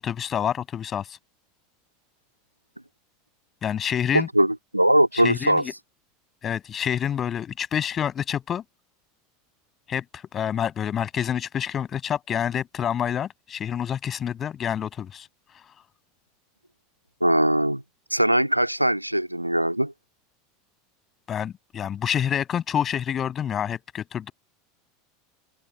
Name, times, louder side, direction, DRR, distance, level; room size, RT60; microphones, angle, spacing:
voice 1, 0.0-1.2 3.6-4.3 5.2-5.7 6.4-8.6 9.9-15.3 21.3-24.3, left 9 dB, 30° left, 8.0 m, -27 dB
voice 2, 4.1-5.7 17.2-17.8 18.1-19.9, right 1 dB, 90° right, 1.9 m, -21 dB
open air
figure-of-eight pair, 80°, 0 cm